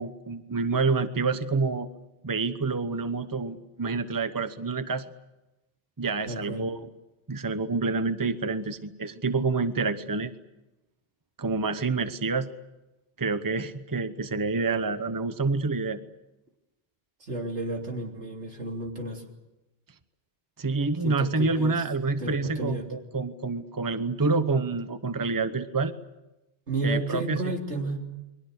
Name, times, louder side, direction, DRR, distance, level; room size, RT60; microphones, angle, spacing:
voice 1, 0.0-1.9 2.2-5.0 6.0-7.0 7.3-10.3 11.4-12.5 13.2-16.0 20.6-25.9 26.8-27.6, right 4 dB, 20° right, 11 dB, 0.9 m, -28 dB
voice 2, 6.3-6.7 17.2-19.2 21.0-21.8 22.2-22.9 26.7-28.0, right 2 dB, 90° right, 1 dB, 3.6 m, -32 dB
30.0 x 22.5 x 6.7 m, 0.97 s
omnidirectional pair, 1.1 m